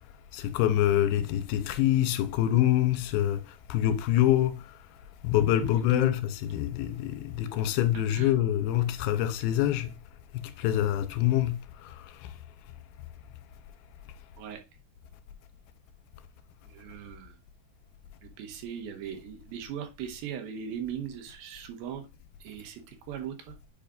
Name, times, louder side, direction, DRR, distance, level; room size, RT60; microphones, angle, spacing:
voice 1, 0.3-3.4 3.7-4.6 5.2-9.9 10.3-11.6, left 12 dB, 85° left, 2.5 m, -25 dB
voice 2, 5.7-6.1 7.9-8.3 14.4-14.6 16.7-17.3 18.2-22.1 22.4-23.5, right 8 dB, 75° right, 2.7 m, -39 dB
9.2 x 4.8 x 2.4 m
omnidirectional pair, 4.4 m